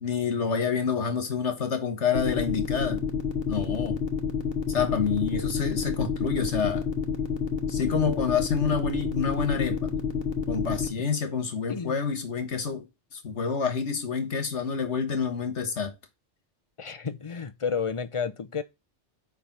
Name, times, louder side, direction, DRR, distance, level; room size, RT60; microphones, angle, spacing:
voice 1, 0.0-3.0 3.5-4.0 4.7-6.8 7.7-9.9 10.5-12.9 13.1-15.9, left 6 dB, 85° left, 1.7 m, -28 dB
sound 1, 2.1-10.9, left 6 dB, 60° left, 1.4 m, -28 dB
voice 2, 11.7-12.0 16.8-18.6, left 6 dB, 35° left, 0.6 m, -31 dB
9.6 x 3.5 x 6.0 m
omnidirectional pair, 1.2 m